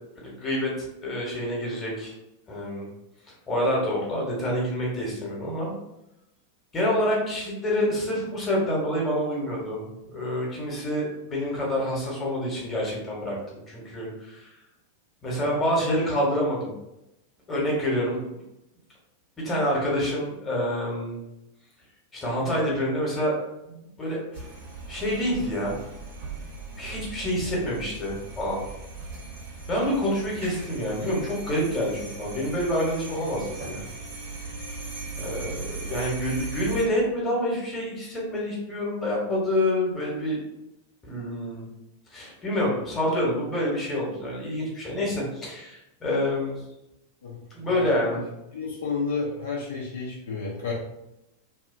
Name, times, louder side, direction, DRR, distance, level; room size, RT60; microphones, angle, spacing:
voice 1, 0.2-2.1 2.5-2.9 3.5-5.7 6.7-14.5 15.2-16.7 17.5-18.3 19.4-21.2 22.1-23.3 23.7-24.4 24.9-25.8 26.8-28.6 29.7-33.8 35.2-40.4 41.0-41.6 42.1-46.6 47.5-48.2, left 1 dB, 20° left, -3 dB, 1.1 m, -27 dB
sound 1, 24.3-36.8, right 3 dB, 60° right, 1.1 m, -38 dB
voice 2, 47.2-48.3 48.5-50.7, left 4 dB, 60° left, -4 dB, 0.5 m, -32 dB
2.7 x 2.3 x 2.5 m, 0.88 s
figure-of-eight pair, 90°, 0 cm